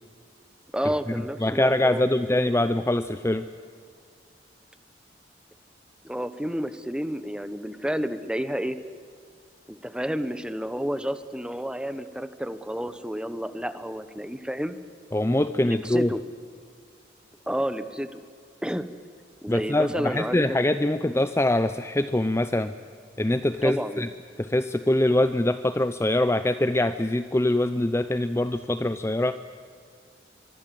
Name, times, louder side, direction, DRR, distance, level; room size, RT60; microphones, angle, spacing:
voice 1, 0.7-2.0 2.3-2.8 6.0-8.8 9.7-14.8 15.6-16.2 17.5-18.2 18.6-18.9 19.4-21.2 23.6-24.1, equal, 5° right, 11 dB, 1.0 m, -31 dB
voice 2, 1.4-3.4 15.1-16.1 19.5-22.7 23.2-24.1 24.4-29.4, left 1 dB, 15° left, 11 dB, 0.5 m, -23 dB
24.0 x 23.5 x 7.7 m, 2.2 s
head